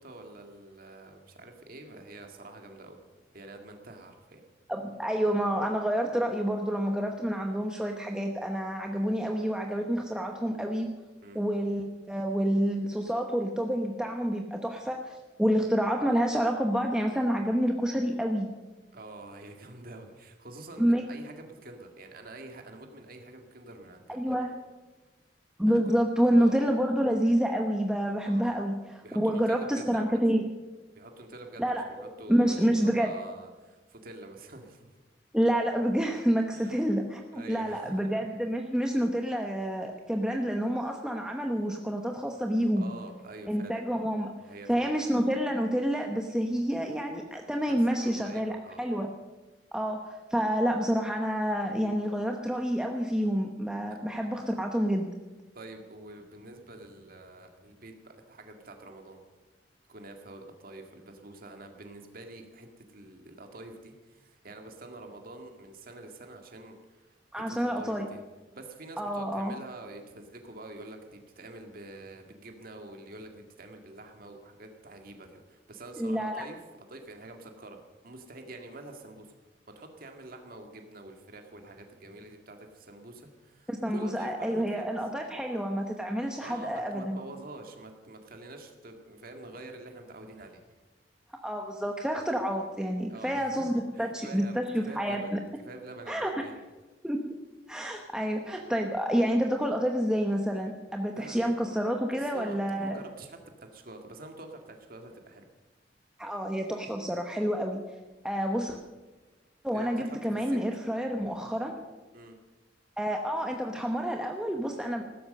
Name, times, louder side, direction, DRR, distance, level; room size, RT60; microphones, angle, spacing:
voice 1, 0.0-3.0 3.3-4.4 11.2-11.4 18.9-24.4 25.7-26.0 26.4-26.6 28.2-28.5 29.0-30.2 30.9-34.9 36.5-36.8 37.3-38.1 42.8-43.8 44.4-44.9 47.7-48.8 55.5-59.2 59.9-68.2 68.5-76.6 76.9-77.8 78.0-79.3 79.7-85.0 86.4-90.6 93.1-95.3 95.6-96.6 101.1-101.8 102.1-105.5 108.5-108.7 109.7-110.6 112.1-112.4, right 2 dB, 55° right, 4 dB, 2.0 m, -47 dB
voice 2, 4.7-10.9 11.3-18.5 20.8-21.1 24.1-24.5 25.6-30.4 31.6-31.9 32.3-33.1 35.3-42.9 43.5-44.3 44.7-49.1 49.7-55.1 67.3-68.1 69.0-69.6 76.0-76.4 83.7-87.2 91.4-95.4 96.1-96.3 97.0-97.2 97.7-103.0 106.2-107.8 108.2-108.8 109.6-111.8 113.0-115.0, equal, 5° right, 2 dB, 0.9 m, -28 dB
15.5 x 13.0 x 6.6 m, 1.2 s
head